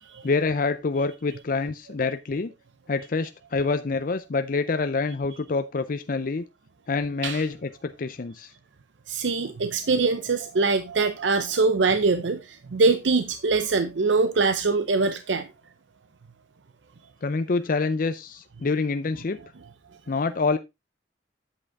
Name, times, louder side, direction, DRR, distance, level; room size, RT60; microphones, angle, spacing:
voice 1, 0.2-2.5 2.9-6.4 6.9-8.5 17.2-19.4 20.1-20.6, left 4 dB, 50° left, 0.5 m, -26 dB
voice 2, 9.1-15.5, right 3 dB, 75° right, 0.6 m, -23 dB
8.7 x 7.8 x 3.4 m
head